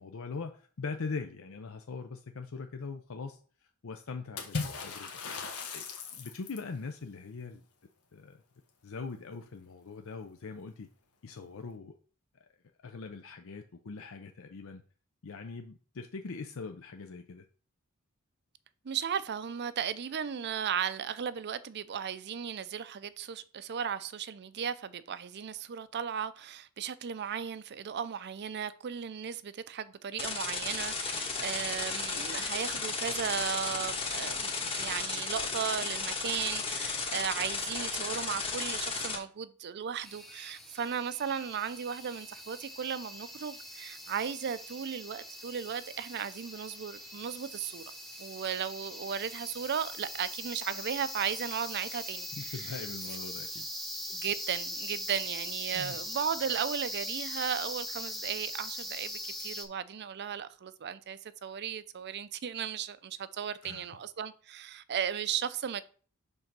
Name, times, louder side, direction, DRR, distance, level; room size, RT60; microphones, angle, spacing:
voice 1, 0.0-3.4 3.8-5.4 5.7-5.8 6.1-7.6 8.1-8.4 8.8-10.9 11.2-11.9 12.8-14.8 15.2-17.4 52.3-53.7 55.7-56.0 63.6-63.9, left 4 dB, 65° left, 0.6 m, -41 dB
Water / Splash splatter, 4.4-6.7, left 4 dB, 90° left, 1.4 m, -37 dB
voice 2, 18.8-47.8 48.2-52.7 54.1-65.8, right 7 dB, 50° right, 0.5 m, -36 dB
sound 1, 30.2-39.2, left 4 dB, 25° left, 1.3 m, -34 dB
sound 2, 40.0-59.7, equal, ahead, 0.8 m, -41 dB
5.3 x 3.9 x 5.9 m
head